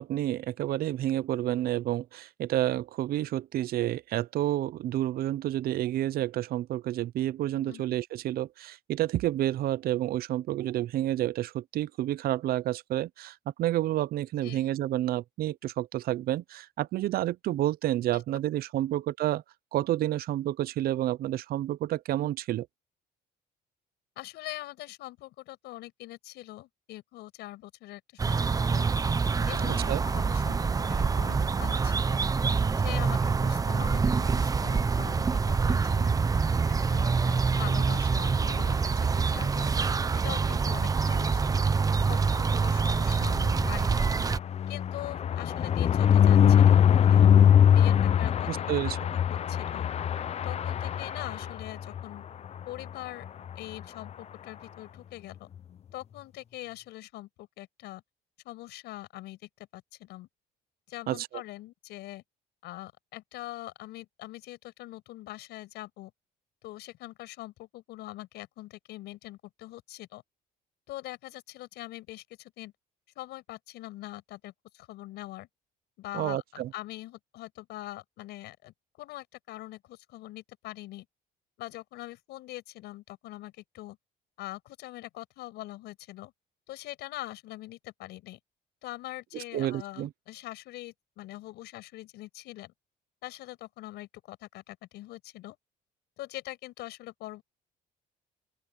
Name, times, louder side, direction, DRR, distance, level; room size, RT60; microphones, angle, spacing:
voice 1, 0.0-19.4 19.7-22.7 29.7-30.0 48.5-49.0 61.1-61.3 76.1-76.7 89.5-90.1, right 13 dB, 65° right, 0.6 m, -29 dB
voice 2, 7.5-7.8 14.4-14.7 18.1-18.2 18.8-18.9 24.2-28.9 29.5-32.2 32.8-36.1 36.7-39.7 40.2-41.7 42.1-44.1 44.7-47.3 47.7-48.7 49.1-49.9 50.4-52.3 52.7-53.3 53.6-55.5 55.9-58.0 58.4-60.3 60.9-62.2 62.6-66.1 66.6-70.2 70.9-72.7 73.2-75.5 76.0-81.1 81.6-84.0 84.4-86.3 86.7-88.4 88.8-92.7 93.2-95.6 96.2-97.4, left 16 dB, 85° left, 7.0 m, -43 dB
sound 1, 28.2-44.4, right 5 dB, 20° right, 0.6 m, -26 dB
sound 2, 43.2-52.0 52.5-52.6 52.9-53.0 53.2-53.5, left 9 dB, 40° left, 0.6 m, -22 dB
open air
cardioid pair, 110°, 17 cm